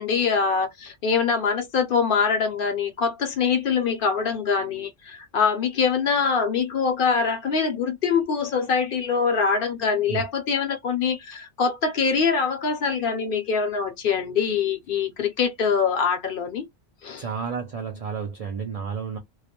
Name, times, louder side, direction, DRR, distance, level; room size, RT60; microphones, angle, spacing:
voice 1, 0.0-16.7 17.0-17.2, left 5 dB, 60° left, 0.7 m, -24 dB
voice 2, 17.2-19.2, right 6 dB, 60° right, 0.4 m, -31 dB
2.2 x 2.1 x 2.7 m
omnidirectional pair, 1.2 m